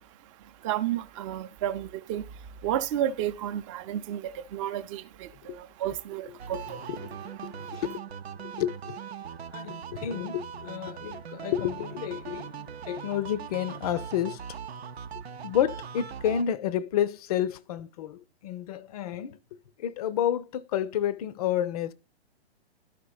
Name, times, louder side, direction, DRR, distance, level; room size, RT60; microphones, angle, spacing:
voice 1, 0.6-2.2 2.6-5.3 5.8-6.6, right 11 dB, 30° right, 0.7 m, -31 dB
voice 2, 6.3-6.6 7.0-7.9 8.4-9.0 9.5-14.4 15.4-19.4 19.8-21.9, left 10 dB, 35° left, 0.6 m, -30 dB
sound 1, 6.4-16.4, right 7 dB, 70° right, 0.7 m, -40 dB
12.5 x 5.1 x 2.4 m
figure-of-eight pair, 120°, 33 cm